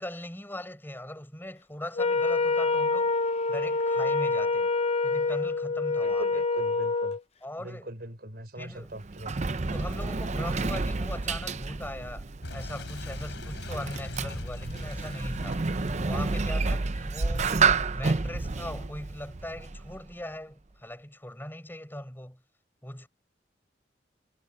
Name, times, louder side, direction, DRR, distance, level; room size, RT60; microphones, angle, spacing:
voice 1, 0.0-3.1 3.5-4.7 5.0-6.4 7.4-7.9 8.5-8.9 9.7-15.6 16.0-17.6 17.9-22.4 22.8-23.1, left 1 dB, 10° left, 5.2 m, -40 dB
Wind instrument woodwind instrument, 1.9-7.2, left 3 dB, 35° left, 0.9 m, -26 dB
voice 2, 6.0-7.2 7.6-9.4, right 1 dB, 55° right, 6.1 m, -41 dB
Sliding door, 8.7-20.1, right 4 dB, 40° right, 0.7 m, -30 dB
Boom, 12.4-18.0, left 1 dB, 80° left, 3.8 m, -40 dB
head